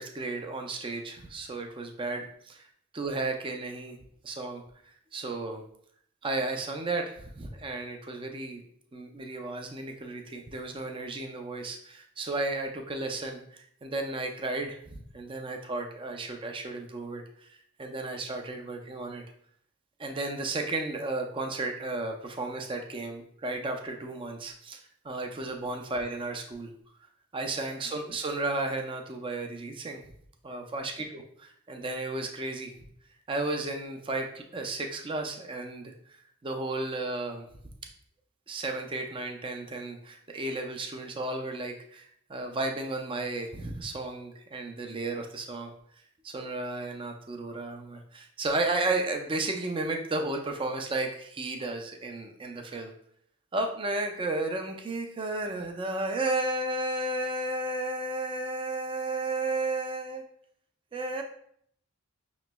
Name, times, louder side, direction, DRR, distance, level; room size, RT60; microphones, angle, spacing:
voice 1, 0.0-2.6 2.9-4.0 4.2-4.6 5.1-5.6 6.2-8.6 8.9-17.5 17.8-19.2 20.0-24.8 25.0-26.7 27.3-30.0 30.4-32.7 33.3-35.9 36.4-37.4 38.5-45.7 46.2-52.9 53.5-60.2 60.9-61.2, right 2 dB, 25° right, 4 dB, 0.4 m, -33 dB
5.8 x 3.0 x 2.2 m, 0.67 s
head